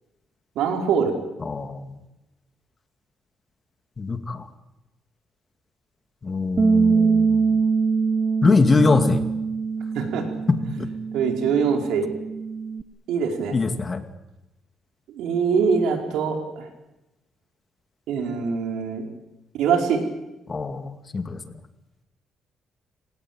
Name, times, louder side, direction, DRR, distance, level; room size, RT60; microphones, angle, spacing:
voice 1, 0.6-1.1 10.0-10.3 11.1-12.1 13.1-13.6 15.1-16.7 18.1-19.1 19.6-20.0, right 6 dB, 85° right, 4 dB, 5.1 m, -23 dB
voice 2, 1.4-2.0 4.0-4.5 6.2-7.5 8.4-9.2 10.5-10.9 13.5-14.0 20.5-21.4, left 3 dB, 30° left, 9 dB, 2.4 m, -22 dB
Bass guitar, 6.6-12.8, right 5 dB, 30° right, 1.2 m, -23 dB
28.5 x 18.0 x 9.0 m, 0.95 s
cardioid pair, 90°, 0 cm